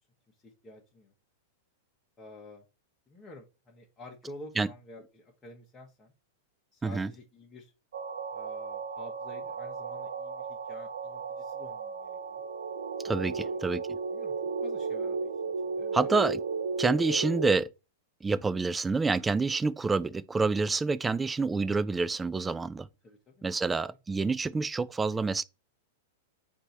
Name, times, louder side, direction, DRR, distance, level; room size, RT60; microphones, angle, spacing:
voice 1, 0.4-1.1 2.2-2.6 3.1-6.1 6.7-7.7 8.3-12.4 13.3-13.6 14.1-14.3 14.6-16.1 23.0-23.5 23.9-24.0, left 2 dB, 20° left, 1.1 m, -50 dB
sound 1, 7.9-17.6, right 4 dB, 75° right, 0.5 m, -34 dB
voice 2, 13.0-14.0 15.9-16.4 16.8-17.7 18.2-22.9 23.4-25.4, right 4 dB, 15° right, 0.3 m, -28 dB
4.5 x 2.7 x 4.0 m
hypercardioid pair, 110°, 0 cm